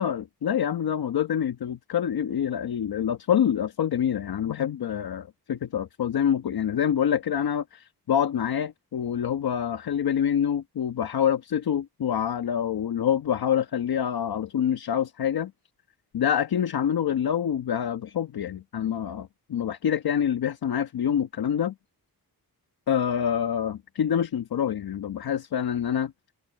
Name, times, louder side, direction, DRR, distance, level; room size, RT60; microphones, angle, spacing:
voice 1, 0.0-15.5 16.1-21.7 22.9-26.1, left 9 dB, 70° left, 1.3 m, -26 dB
wide cardioid pair, 165°, 38 cm